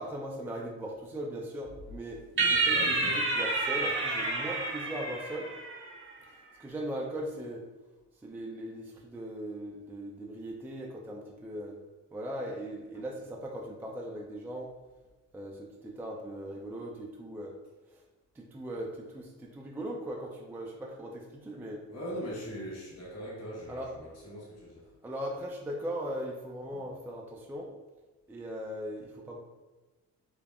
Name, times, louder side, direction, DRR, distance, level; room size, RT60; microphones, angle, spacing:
voice 1, 0.0-5.5 6.3-7.6 8.2-11.8 12.1-14.7 15.3-17.6 17.9-18.0 18.4-21.8 23.7-23.9 25.0-27.7 28.3-29.4, right 1 dB, 5° right, -1 dB, 0.3 m, -39 dB
voice 2, 2.4-3.2 12.9-13.0 21.9-24.8, equal, 55° left, -5 dB, 1.1 m, -41 dB
sound 1, 2.4-5.9, right 3 dB, 40° right, 0.7 m, -29 dB
3.5 x 2.1 x 2.3 m, 1.2 s
cardioid pair, 90°, 30 cm